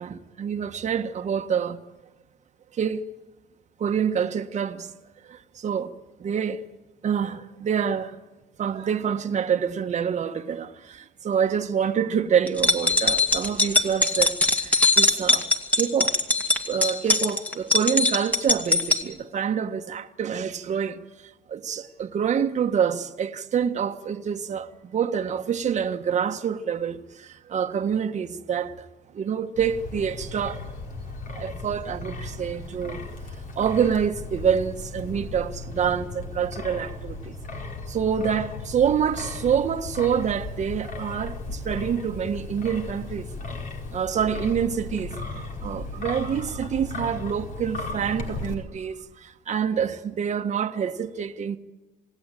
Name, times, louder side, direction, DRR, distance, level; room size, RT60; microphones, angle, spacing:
voice 1, 0.0-1.8 2.8-3.0 3.8-4.9 5.2-5.9 6.2-6.6 7.0-8.2 8.6-15.5 15.7-16.1 16.7-21.0 21.5-28.9 29.1-30.6 31.4-33.1 33.5-37.3 37.9-43.3 43.9-51.6, right 7 dB, 45° right, 1.5 m, -27 dB
sound 1, 12.5-19.0, left 2 dB, 10° left, 2.3 m, -21 dB
Wind, 29.6-48.5, left 3 dB, 50° left, 4.8 m, -36 dB
27.5 x 18.0 x 9.3 m
cardioid pair, 110°, 17 cm